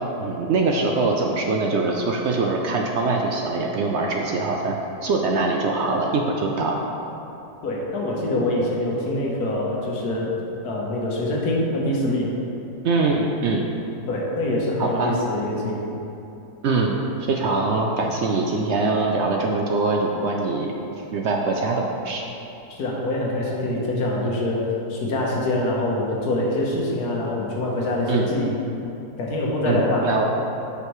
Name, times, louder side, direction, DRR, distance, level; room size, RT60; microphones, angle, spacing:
voice 1, 0.2-4.8 5.0-6.8 12.8-13.7 14.8-15.1 16.6-17.0 17.3-20.7 21.1-22.2 28.1-28.3 29.7-30.2, right 3 dB, 70° right, 0 dB, 0.6 m, -23 dB
voice 2, 7.6-10.3 10.6-12.3 14.1-15.9 22.7-24.6 24.9-28.6 29.2-30.1, left 1 dB, 85° left, -3 dB, 1.6 m, -24 dB
8.1 x 5.3 x 3.1 m, 2.9 s
omnidirectional pair, 1.6 m